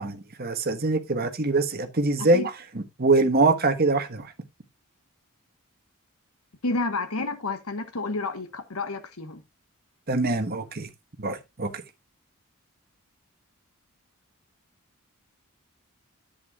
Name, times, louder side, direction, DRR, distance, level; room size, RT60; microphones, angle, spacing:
voice 1, 0.0-4.3 10.1-10.9 11.2-11.8, right 3 dB, 45° right, 1.3 m, -24 dB
voice 2, 6.6-9.4, left 3 dB, 75° left, 1.3 m, -30 dB
10.5 x 8.4 x 2.4 m
head